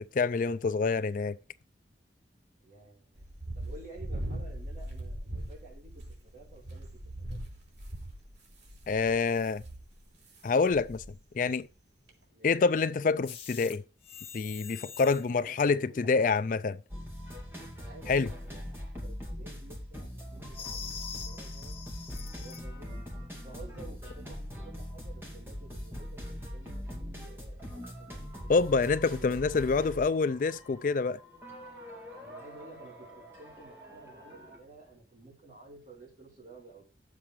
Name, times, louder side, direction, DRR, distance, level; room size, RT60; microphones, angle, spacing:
voice 1, 0.0-1.4 8.9-9.6 10.4-11.0 11.3-11.7 12.4-13.8 14.3-16.8 18.1-18.3 28.5-31.2, left 4 dB, 50° left, 0.4 m, -27 dB
voice 2, 2.6-3.3 3.5-6.9 7.2-7.4 12.3-12.6 15.1-16.3 17.8-21.8 22.2-23.0 23.3-28.2 32.2-36.9, right 2 dB, 45° right, 5.4 m, -52 dB
sound 1, 3.2-10.4 10.7-11.2 11.5-11.6 12.1-12.2, right 1 dB, 85° right, 3.3 m, -40 dB
sound 2, 13.2-13.8 14.0-15.3 20.5-22.6, left 7 dB, 30° left, 1.3 m, -44 dB
sound 3, 16.9-34.6, equal, 15° right, 2.3 m, -42 dB
10.0 x 7.6 x 4.7 m
head